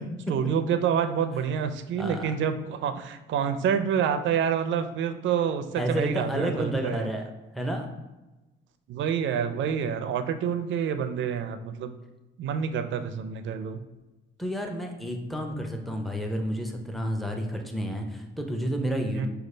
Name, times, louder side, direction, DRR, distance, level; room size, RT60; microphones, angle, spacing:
voice 1, 0.3-7.1 8.9-11.9 12.4-13.8 19.1-19.3, right 7 dB, 70° right, 9 dB, 0.5 m, -27 dB
voice 2, 2.0-2.4 5.8-7.2 7.5-7.9 14.4-19.3, equal, ahead, 3 dB, 0.6 m, -30 dB
6.3 x 2.4 x 3.2 m, 1.1 s
cardioid pair, 90°, 20 cm